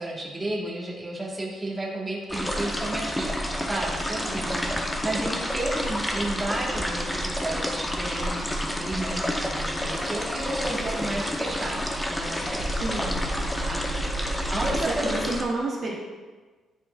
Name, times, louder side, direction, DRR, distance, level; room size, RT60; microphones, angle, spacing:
voice 1, 0.0-12.6 14.5-15.2, right 1 dB, 20° right, -3 dB, 1.6 m, -32 dB
sound 1, 2.3-15.4, equal, 10° left, 0.8 m, -29 dB
voice 2, 4.3-4.8 12.8-13.3 13.6-14.1 14.6-16.0, right 2 dB, 50° right, -4 dB, 1.1 m, -32 dB
sound 2, 9.8-14.8, right 1 dB, 45° left, 1.7 m, -35 dB
10.5 x 4.2 x 2.5 m, 1.3 s
cardioid pair, 90°, 0 cm